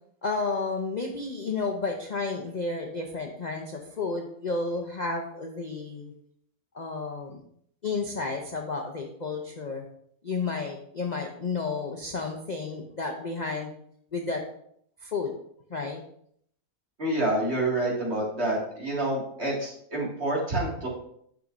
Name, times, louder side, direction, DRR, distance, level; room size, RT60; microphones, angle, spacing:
voice 1, 0.2-6.1 6.7-7.4 7.8-9.9 10.2-13.7 14.1-14.4 15.0-15.3 15.7-16.0, left 4 dB, 40° left, 1 dB, 0.6 m, -31 dB
voice 2, 17.0-20.9, right 1 dB, 45° right, -4 dB, 2.4 m, -28 dB
10.0 x 6.3 x 2.6 m, 0.68 s
omnidirectional pair, 1.6 m